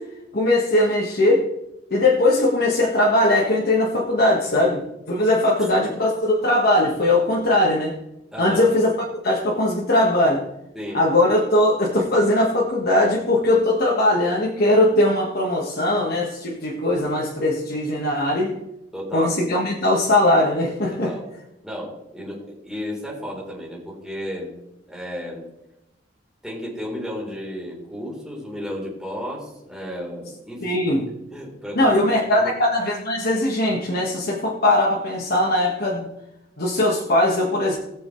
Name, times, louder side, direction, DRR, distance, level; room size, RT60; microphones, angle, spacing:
voice 1, 0.3-1.4 1.9-7.9 8.4-8.9 9.2-10.4 10.9-18.5 19.1-21.1 30.6-31.0 31.7-36.1 36.6-37.8, left 1 dB, 55° left, -3 dB, 1.6 m, -20 dB
voice 2, 8.3-8.7 10.7-11.0 18.9-19.3 20.9-21.3 21.6-24.5 24.9-25.4 26.4-30.8 31.3-32.5, equal, 5° right, -4 dB, 3.8 m, -33 dB
20.0 x 7.0 x 3.3 m, 0.88 s
head